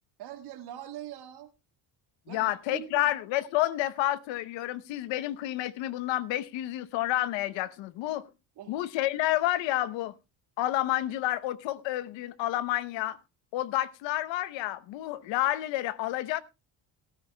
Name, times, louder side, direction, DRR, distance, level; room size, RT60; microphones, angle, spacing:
voice 1, 0.2-1.5 2.3-3.1 8.6-8.9, right 12 dB, 60° right, 2.2 m, -42 dB
voice 2, 2.3-8.3 8.7-10.1 10.6-13.2 13.5-16.4, left 15 dB, 85° left, 0.9 m, -29 dB
18.5 x 12.5 x 2.2 m
cardioid pair, 135°, 44 cm